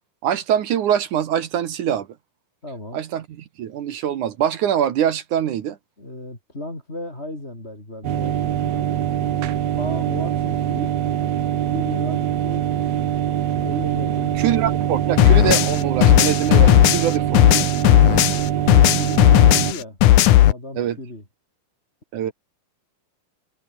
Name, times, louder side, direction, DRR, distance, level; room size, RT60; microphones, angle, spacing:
voice 1, 0.2-2.1 2.9-5.8 14.4-17.7 19.6-19.7 20.8-21.0 22.1-22.3, right 9 dB, 65° right, 2.6 m, -23 dB
voice 2, 2.6-3.0 6.0-8.8 9.7-10.9 11.7-12.6 13.5-14.4 19.0-20.0 20.3-21.2 22.2-22.3, left 1 dB, 15° left, 6.4 m, -35 dB
sound 1, 8.0-19.7, right 11 dB, 85° right, 3.8 m, -23 dB
sound 2, 15.2-18.4 18.7-20.5, left 14 dB, 70° left, 2.3 m, -14 dB
omnidirectional pair, 4.2 m